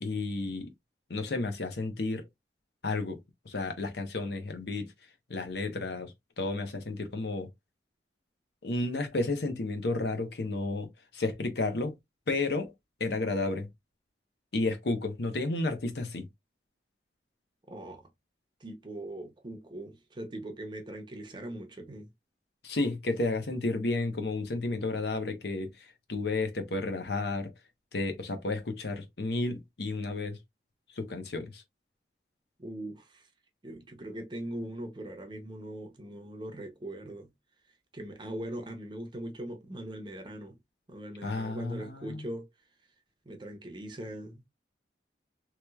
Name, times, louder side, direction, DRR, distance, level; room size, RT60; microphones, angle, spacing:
voice 1, 0.0-0.7 1.1-2.2 2.8-3.2 3.5-4.9 5.3-7.5 8.6-10.9 11.1-11.9 12.3-12.7 13.0-13.7 14.5-16.3 22.6-25.7 26.1-27.5 27.9-30.4 31.0-31.6 41.2-42.3, left 2 dB, 65° left, 0.8 m, -32 dB
voice 2, 17.7-18.1 18.6-22.1 32.6-33.3 33.6-37.3 37.9-40.6 40.9-42.5 43.3-44.4, right 1 dB, 25° right, 0.6 m, -41 dB
3.1 x 3.0 x 2.2 m
head